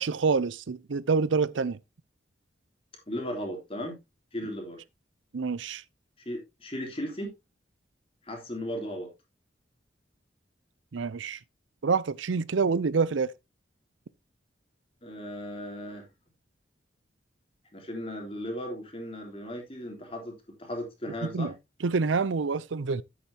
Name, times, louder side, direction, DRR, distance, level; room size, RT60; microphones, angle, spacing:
voice 1, 0.0-1.8 5.3-5.8 10.9-11.4 11.8-13.3 21.3-21.5 21.8-23.0, right 4 dB, 90° right, 0.5 m, -27 dB
voice 2, 3.1-4.0 4.3-4.8 6.2-7.3 8.2-9.1 15.0-16.1 17.7-21.5, equal, 30° left, 3.3 m, -36 dB
10.5 x 8.6 x 2.9 m
head